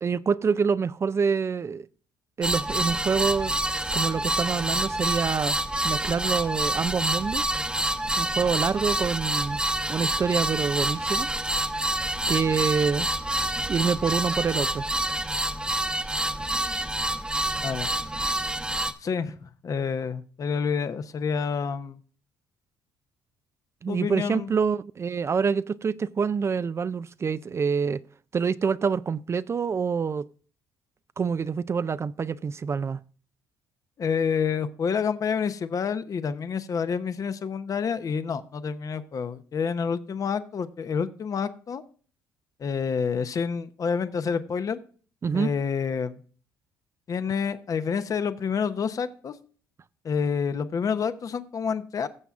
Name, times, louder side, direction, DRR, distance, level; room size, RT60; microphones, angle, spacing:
voice 1, 0.0-1.9 2.4-3.6 3.9-5.6 5.8-7.5 8.2-9.6 9.9-11.3 12.3-13.1 13.7-14.8 23.8-28.0 28.3-30.3 31.2-33.0 45.2-45.5, right 6 dB, 35° right, 0.4 m, -26 dB
sound 1, 2.4-18.9, right 1 dB, 10° right, 1.0 m, -27 dB
voice 2, 17.6-17.9 19.0-22.0 23.9-24.6 34.0-41.8 42.6-44.8 45.3-46.2 47.1-49.3 50.0-52.1, left 6 dB, 45° left, 0.8 m, -28 dB
16.5 x 7.0 x 2.4 m
supercardioid pair, 75°, 8 cm